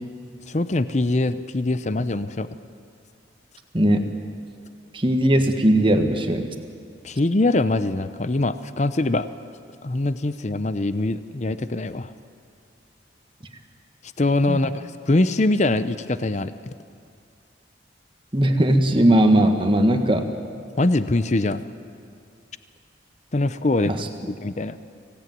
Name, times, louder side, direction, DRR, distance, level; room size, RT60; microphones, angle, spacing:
voice 1, 0.5-2.5 7.0-9.3 9.8-12.1 14.2-16.7 20.8-21.6 23.3-23.9 24.3-24.8, left 2 dB, 35° left, 12 dB, 0.6 m, -23 dB
voice 2, 4.9-6.5 14.5-14.6 18.3-20.2 23.8-23.9, right 1 dB, 25° right, 5 dB, 1.6 m, -18 dB
24.5 x 17.0 x 9.4 m, 2.3 s
head